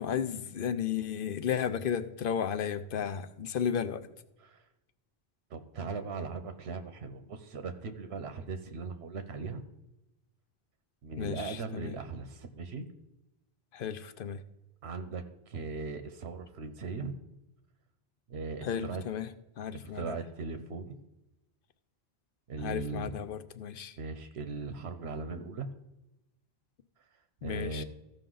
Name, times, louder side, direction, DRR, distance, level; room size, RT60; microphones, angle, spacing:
voice 1, 0.0-4.0 11.2-12.0 13.7-14.4 18.6-19.3 19.6-20.1 22.6-23.9 27.4-27.8, left 8 dB, 65° left, 11 dB, 0.8 m, -33 dB
voice 2, 5.5-9.6 11.0-12.9 14.8-17.1 18.3-19.0 19.8-21.0 22.5-23.1 24.0-25.7 27.4-27.8, right 4 dB, 90° right, 9 dB, 1.0 m, -39 dB
14.5 x 5.4 x 3.9 m, 0.95 s
omnidirectional pair, 1.1 m